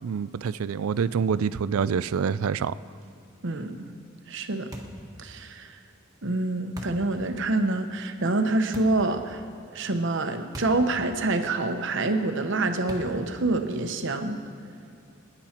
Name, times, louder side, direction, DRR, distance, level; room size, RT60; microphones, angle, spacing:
voice 1, 0.0-2.7, right 6 dB, 80° right, 17 dB, 0.4 m, -26 dB
voice 2, 3.4-3.8 4.3-4.7 5.2-5.8 6.2-9.4 9.7-14.4, right 2 dB, 60° right, 7 dB, 1.0 m, -26 dB
sound 1, 4.7-5.1 6.8-7.1 8.7-9.1 10.5-10.9 11.2-11.3 12.9-13.3, equal, 15° right, 1.4 m, -40 dB
25.0 x 10.0 x 4.4 m, 2.4 s
head